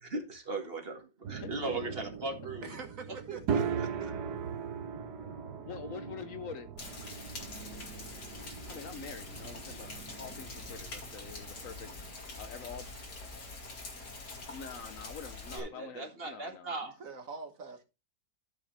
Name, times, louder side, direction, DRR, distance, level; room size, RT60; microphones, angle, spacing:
voice 1, 0.0-2.8 3.3-3.4 15.5-16.9, right 3 dB, 35° right, 1.8 m, -38 dB
sound 1, 1.2-12.2, right 7 dB, 75° right, 1.5 m, -39 dB
voice 2, 1.4-1.8 5.6-6.7 8.7-12.9 14.5-16.7, left 6 dB, 60° left, 1.1 m, -45 dB
voice 3, 2.6-4.2 16.8-17.8, right 4 dB, 55° right, 1.7 m, -45 dB
Rain, 6.8-15.6, left 3 dB, 85° left, 2.9 m, -45 dB
13.0 x 5.7 x 3.2 m
omnidirectional pair, 1.7 m